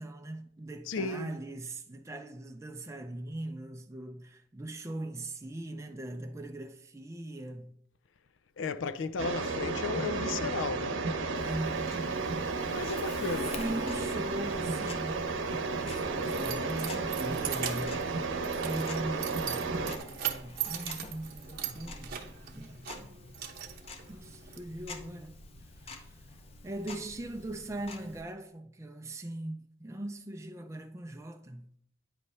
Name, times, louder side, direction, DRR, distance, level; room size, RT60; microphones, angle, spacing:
voice 1, 0.0-7.8 11.4-12.0 13.3-18.4 18.6-22.2 22.5-22.8 24.1-25.4 25.8-26.2 26.6-31.7, right 1 dB, 15° right, 0.4 m, -40 dB
voice 2, 0.9-1.3 8.6-11.0 12.7-13.6, left 4 dB, 75° left, 0.4 m, -34 dB
sound 1, 9.2-20.0, right 3 dB, 80° right, 0.8 m, -33 dB
Tick-tock, 11.3-28.2, left 2 dB, 30° left, 0.7 m, -48 dB
Keys jangling, 16.1-24.6, right 10 dB, 50° right, 0.9 m, -40 dB
9.3 x 3.2 x 5.4 m
head